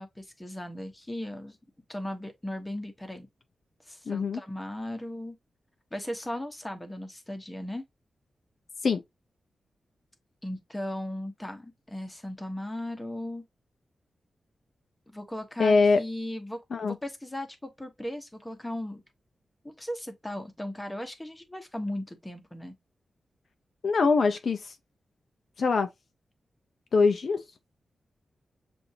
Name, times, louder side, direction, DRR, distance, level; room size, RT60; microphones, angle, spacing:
voice 1, 0.0-1.6 1.9-3.3 3.9-5.4 5.9-7.8 10.4-13.4 15.1-19.0 19.6-22.8, left 1 dB, 10° left, 1.0 m, -37 dB
voice 2, 4.1-4.4 8.8-9.0 15.6-16.0 16.7-17.0 23.8-24.7 25.6-25.9 26.9-27.4, left 4 dB, 60° left, 0.6 m, -23 dB
6.9 x 2.6 x 2.6 m
wide cardioid pair, 130°, 0 cm